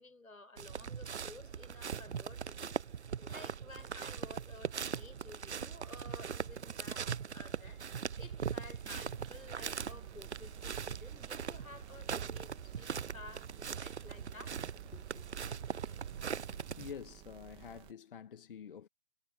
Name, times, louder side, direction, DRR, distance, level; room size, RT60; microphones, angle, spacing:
voice 1, 0.0-2.8 3.2-7.8 8.2-14.6 14.9-15.3, left 3 dB, 80° left, 5.4 m, -54 dB
sound 1, 0.6-16.9, right 7 dB, 55° right, 0.8 m, -41 dB
sound 2, 9.1-17.9, right 21 dB, 15° right, 1.9 m, -55 dB
voice 2, 16.8-18.9, left 7 dB, 40° left, 2.1 m, -47 dB
figure-of-eight pair, 145°, 41 cm